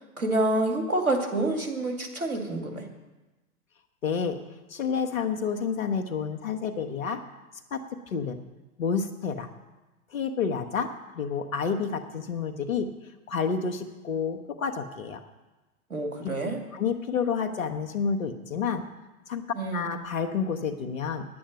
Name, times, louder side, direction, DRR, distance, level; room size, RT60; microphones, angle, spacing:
voice 1, 0.0-2.8 15.9-16.6 19.6-19.9, right 2 dB, 85° right, 2 dB, 2.3 m, -28 dB
voice 2, 4.0-4.4 4.7-7.2 7.7-7.8 8.1-8.4 8.8-9.5 10.1-10.9 11.1-12.9 13.3-15.2 16.7-18.8 19.3-19.4 19.7-21.3, left 6 dB, 65° left, 7 dB, 1.4 m, -29 dB
10.5 x 8.5 x 7.9 m, 1.1 s
figure-of-eight pair, 105°, 42 cm